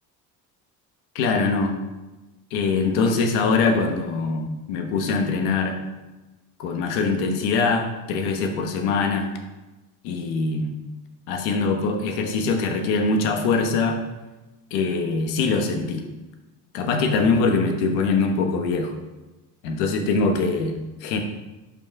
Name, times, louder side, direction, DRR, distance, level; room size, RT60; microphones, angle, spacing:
voice 1, 1.1-1.7 2.5-5.8 6.6-9.3 10.0-10.8 11.3-14.0 14.7-16.0 16.7-19.0 19.6-21.2, left 4 dB, 85° left, 5 dB, 1.1 m, -23 dB
5.4 x 5.2 x 4.7 m, 1.1 s
cardioid pair, 120°, 37 cm